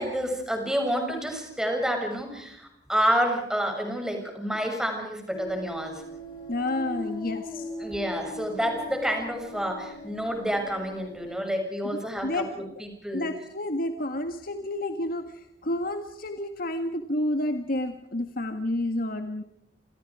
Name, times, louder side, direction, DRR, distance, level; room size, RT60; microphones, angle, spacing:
voice 1, 0.0-6.0 7.8-13.3, equal, 5° right, 3 dB, 6.9 m, -29 dB
sound 1, 5.3-11.4, left 1 dB, 30° left, 7.7 m, -40 dB
voice 2, 6.5-7.7 11.9-12.8 13.1-19.4, left 1 dB, 55° left, 6 dB, 1.8 m, -30 dB
29.5 x 28.0 x 4.9 m, 0.74 s
head